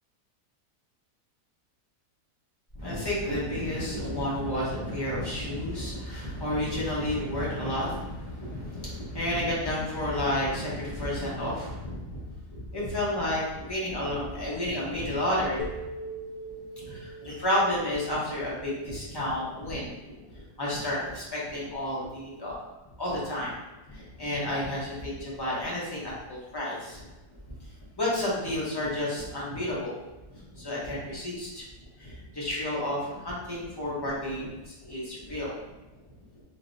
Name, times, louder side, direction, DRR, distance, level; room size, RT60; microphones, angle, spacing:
voice 1, 2.7-15.7 16.8-19.9 20.3-22.6 23.0-23.5 23.9-27.0 27.6-27.7 28.0-30.0 30.3-31.7 32.0-35.5, left 1 dB, 25° left, -7 dB, 0.5 m, -31 dB
sound 1, 15.6-19.7, right 1 dB, 75° left, 1.2 m, -42 dB
3.4 x 2.7 x 2.5 m, 1.1 s
omnidirectional pair, 1.7 m